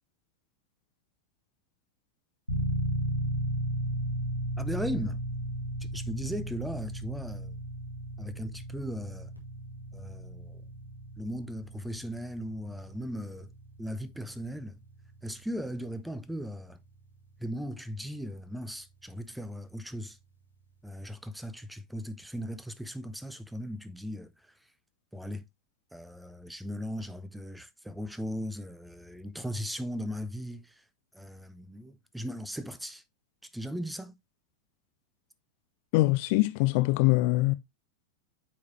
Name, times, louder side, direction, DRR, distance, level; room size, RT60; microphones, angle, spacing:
sound 1, 2.5-19.2, right 1 dB, 90° right, 1.8 m, -36 dB
voice 1, 4.6-5.2 5.9-7.6 8.2-9.3 9.9-10.6 11.2-13.5 13.8-14.8 15.2-16.8 17.4-20.2 20.8-24.5 25.1-25.4 25.9-30.8 31.1-33.0 33.4-34.1, equal, 5° right, 0.7 m, -38 dB
voice 2, 35.9-37.5, left 20 dB, 45° left, 0.4 m, -23 dB
8.4 x 4.8 x 2.8 m
figure-of-eight pair, 90°, 0 cm